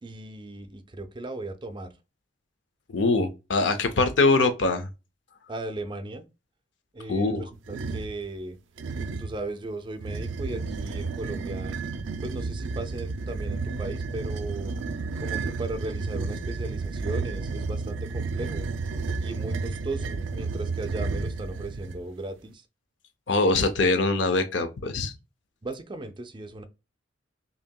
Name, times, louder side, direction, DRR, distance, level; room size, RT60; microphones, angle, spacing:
voice 1, 0.0-1.9 5.5-6.2 6.9-8.6 9.2-11.8 12.2-14.7 15.2-18.7 19.2-22.6 25.6-26.6, right 2 dB, 25° right, 0.4 m, -36 dB
voice 2, 2.9-4.9 7.1-7.5 23.3-25.1, left 3 dB, 70° left, 0.6 m, -23 dB
sound 1, 7.7-8.2 8.8-9.4 10.0-22.0, right 4 dB, 80° right, 0.4 m, -32 dB
5.5 x 2.8 x 2.2 m
head